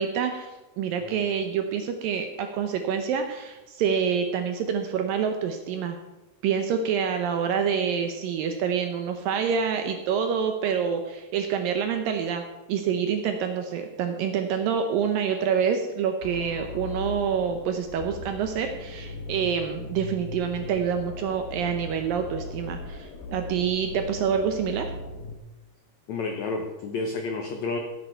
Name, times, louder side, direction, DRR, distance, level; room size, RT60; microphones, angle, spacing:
voice 1, 0.0-6.0 6.4-12.4 12.7-24.9, right 7 dB, 75° right, 6 dB, 2.1 m, -27 dB
sound 1, 16.2-25.4, left 2 dB, 65° left, 2.6 m, -38 dB
voice 2, 26.1-27.8, left 3 dB, 90° left, 3 dB, 1.5 m, -30 dB
15.5 x 8.8 x 4.5 m, 1.1 s
omnidirectional pair, 4.8 m